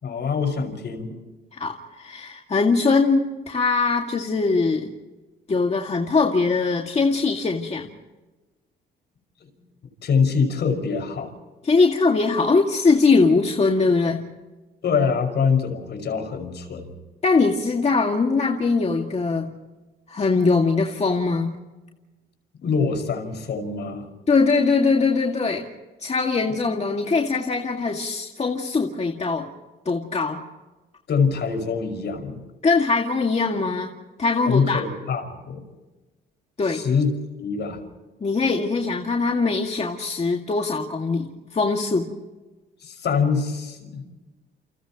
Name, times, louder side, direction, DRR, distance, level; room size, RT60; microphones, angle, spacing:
voice 1, 0.0-1.2 10.0-11.3 14.8-17.0 22.6-24.1 26.5-26.6 31.1-32.4 34.5-35.6 36.7-37.8 42.8-44.0, left 5 dB, 60° left, 5 dB, 5.8 m, -24 dB
voice 2, 1.5-4.9 5.5-7.9 11.6-14.2 17.2-19.5 20.1-21.5 24.3-25.7 26.0-29.5 29.9-30.4 32.6-33.9 34.2-34.8 36.6-36.8 38.2-41.3 41.5-42.1, left 4 dB, 35° left, 1 dB, 2.2 m, -21 dB
29.5 x 29.0 x 3.1 m, 1.1 s
cardioid pair, 90°, 20 cm